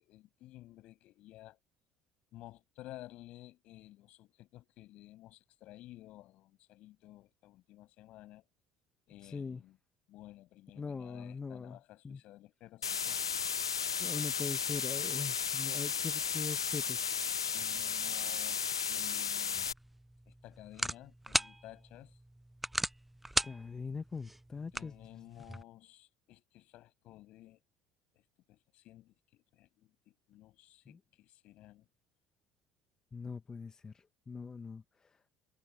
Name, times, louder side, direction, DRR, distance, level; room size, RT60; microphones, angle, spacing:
voice 1, 0.0-1.6 2.3-8.5 9.1-9.8 10.1-13.2 17.5-19.7 20.3-22.2 24.7-27.6 28.1-31.9, left 16 dB, 55° left, 6.9 m, -54 dB
voice 2, 9.2-9.6 10.8-11.8 12.0-12.2 14.0-17.1 23.4-24.9 30.9-31.0 33.1-35.2, left 5 dB, 25° left, 1.8 m, -42 dB
sound 1, 12.8-19.7, left 6 dB, 80° left, 0.8 m, -34 dB
sound 2, 19.5-25.6, right 1 dB, 5° right, 0.4 m, -39 dB
figure-of-eight pair, 60°, 3 cm